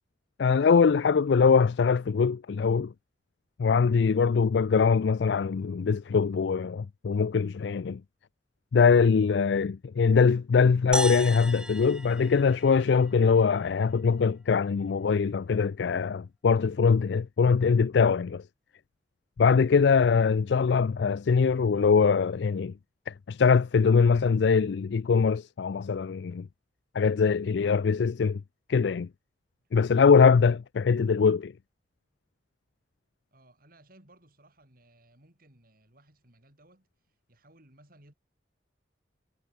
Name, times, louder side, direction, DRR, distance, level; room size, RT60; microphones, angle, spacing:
voice 1, 0.4-2.9 3.6-8.0 8.7-18.4 19.4-22.7 23.1-26.5 26.9-28.4 28.7-29.1 29.7-31.5, left 5 dB, 65° left, 0.4 m, -22 dB
sound 1, 10.9-13.4, right 1 dB, 5° right, 0.7 m, -35 dB
voice 2, 33.3-38.1, right 1 dB, 50° right, 7.4 m, -60 dB
head